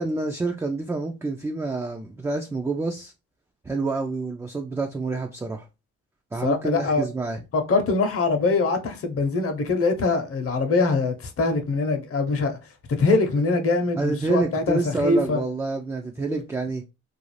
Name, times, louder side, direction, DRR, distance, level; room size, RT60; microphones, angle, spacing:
voice 1, 0.0-3.1 3.6-5.7 6.3-7.4 14.0-16.8, right 3 dB, 10° right, 0.3 m, -28 dB
voice 2, 6.4-7.0 7.5-12.6 13.0-15.4 16.3-16.4, left 3 dB, 50° left, 0.8 m, -23 dB
2.5 x 2.3 x 3.1 m
cardioid pair, 90°, 30 cm